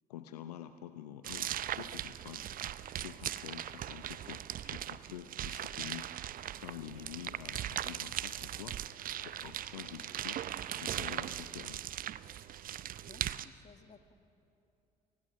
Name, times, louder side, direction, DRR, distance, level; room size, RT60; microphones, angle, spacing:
voice 1, 0.1-2.5 3.0-6.3 6.6-8.8 9.4-10.4 10.7-11.8, left 11 dB, 75° left, 11 dB, 0.7 m, -47 dB
sound 1, 1.2-13.5, right 11 dB, 45° right, 0.7 m, -39 dB
voice 2, 13.0-14.1, left 5 dB, 35° left, 9 dB, 1.6 m, -58 dB
29.5 x 19.5 x 6.4 m, 2.8 s
figure-of-eight pair, 50°, 20 cm